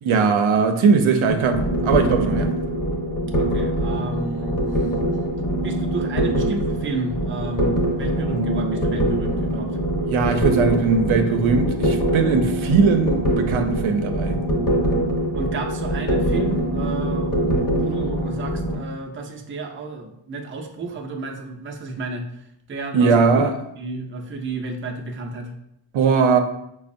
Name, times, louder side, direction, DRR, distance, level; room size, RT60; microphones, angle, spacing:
voice 1, 0.0-2.5 8.2-9.0 10.1-14.4 22.9-23.6 25.9-26.4, right 5 dB, 80° right, 6 dB, 0.5 m, -20 dB
sound 1, 1.3-18.8, right 1 dB, 40° left, 0.9 m, -23 dB
voice 2, 3.4-4.6 5.6-9.8 15.3-22.3 22.7-23.4 23.8-25.5, right 3 dB, 30° right, 3 dB, 0.4 m, -32 dB
5.1 x 2.0 x 2.5 m, 0.77 s
wide cardioid pair, 105°, 48 cm